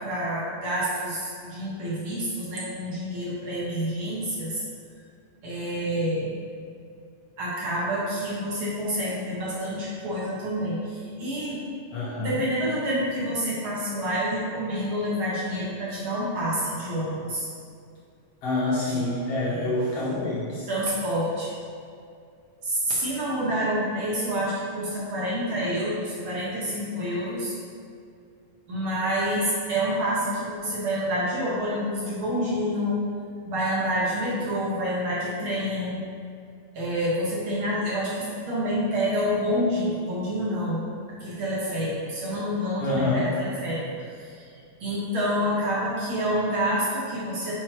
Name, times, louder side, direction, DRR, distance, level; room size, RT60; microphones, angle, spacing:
voice 1, 0.0-4.6 5.4-6.3 7.4-11.6 12.2-17.5 18.9-19.1 19.5-19.7 20.7-21.6 22.6-27.5 28.7-33.0 33.4-36.1 36.7-40.9 41.2-44.5 44.8-47.5, equal, 50° right, -7 dB, 1.8 m, -28 dB
voice 2, 11.9-12.4 18.4-20.7 25.5-25.8 42.8-43.3, left 2 dB, 75° left, -6 dB, 1.4 m, -27 dB
6.6 x 4.2 x 4.5 m, 2.3 s
omnidirectional pair, 3.8 m